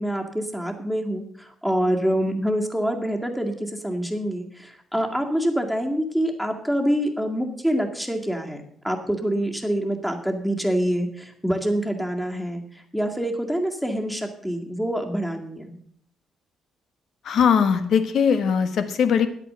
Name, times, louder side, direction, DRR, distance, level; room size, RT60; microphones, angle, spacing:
voice 1, 0.0-12.6 12.9-15.8, equal, ahead, 4 dB, 2.1 m, -26 dB
voice 2, 17.2-19.3, left 7 dB, 70° left, 10 dB, 1.4 m, -20 dB
10.5 x 8.4 x 6.8 m, 0.64 s
cardioid pair, 90°, 0 cm